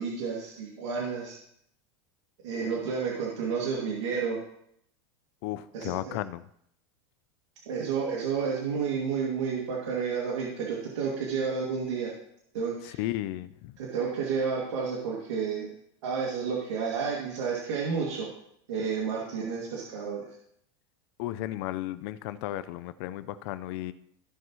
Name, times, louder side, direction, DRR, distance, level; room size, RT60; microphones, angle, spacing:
voice 1, 0.0-1.4 2.4-4.4 5.7-6.2 7.7-12.1 12.5-13.0 13.8-15.7 16.0-18.3 18.7-20.2, right 5 dB, 85° right, -4 dB, 2.5 m, -31 dB
voice 2, 5.4-6.5 12.8-13.7 21.2-23.9, left 15 dB, 60° left, 14 dB, 0.6 m, -34 dB
15.0 x 5.5 x 3.1 m, 0.72 s
supercardioid pair, 125°, 15 cm